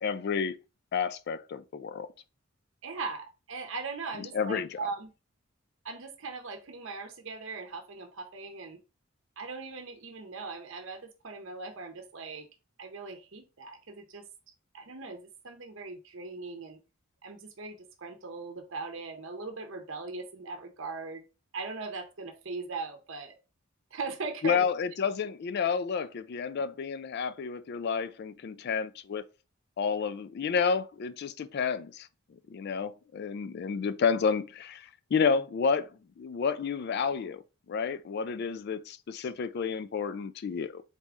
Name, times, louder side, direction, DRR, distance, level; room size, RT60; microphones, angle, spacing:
voice 1, 0.0-0.6 0.9-2.1 4.2-4.8 24.4-29.2 29.8-32.1 32.5-35.9 36.2-37.4 37.7-40.8, left 6 dB, 50° left, 0.3 m, -30 dB
voice 2, 2.8-5.1 5.8-8.8 9.4-12.5 12.8-14.2 14.7-16.8 17.2-21.2 21.5-23.3 23.9-24.7, right 4 dB, 60° right, 0.7 m, -39 dB
4.1 x 3.6 x 3.5 m
head